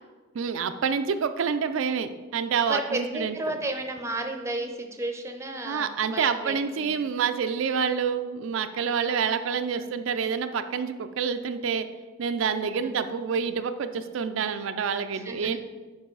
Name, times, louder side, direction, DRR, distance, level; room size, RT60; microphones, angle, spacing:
voice 1, 0.3-3.4 5.6-11.9 12.2-15.6, right 6 dB, 75° right, 9 dB, 0.4 m, -27 dB
voice 2, 2.7-7.0 12.8-12.9 15.1-15.6, right 2 dB, 15° right, 5 dB, 0.6 m, -33 dB
8.7 x 5.3 x 3.9 m, 1.3 s
head